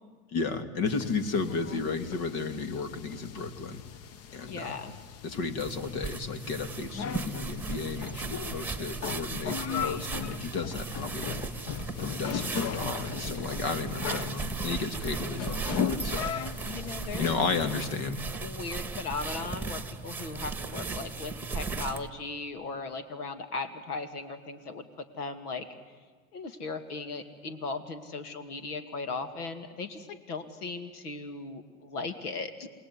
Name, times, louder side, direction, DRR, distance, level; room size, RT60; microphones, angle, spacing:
voice 1, 0.3-3.8 4.3-4.8 5.2-11.4 12.0-16.3 17.2-18.2, left 4 dB, 55° left, 10 dB, 2.8 m, -33 dB
sound 1, 0.9-17.8, left 8 dB, 35° left, 1.0 m, -38 dB
voice 2, 4.4-4.9 9.7-10.0 16.6-17.5 18.4-24.9 25.2-25.7 26.3-32.7, left 3 dB, 85° left, 9 dB, 2.4 m, -37 dB
sound 2, 5.6-22.1, right 4 dB, 5° right, 1.9 m, -37 dB
28.5 x 20.0 x 9.8 m, 1.5 s
hypercardioid pair, 100°, 45 cm